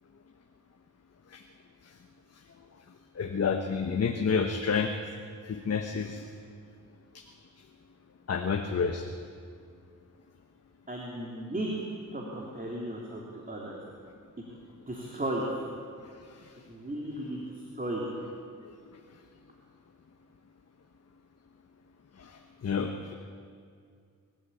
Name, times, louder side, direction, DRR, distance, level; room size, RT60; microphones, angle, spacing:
voice 1, 3.2-4.9 5.5-6.2 7.1-7.2 8.3-9.0 22.2-22.3 22.6-23.1, left 5 dB, 50° left, 4 dB, 1.3 m, -29 dB
voice 2, 10.9-11.8 12.1-13.8 14.9-15.5 16.7-17.4 17.7-18.1, right 1 dB, 25° right, -2 dB, 3.3 m, -35 dB
25.0 x 13.5 x 8.7 m, 2.3 s
cardioid pair, 85°, 32 cm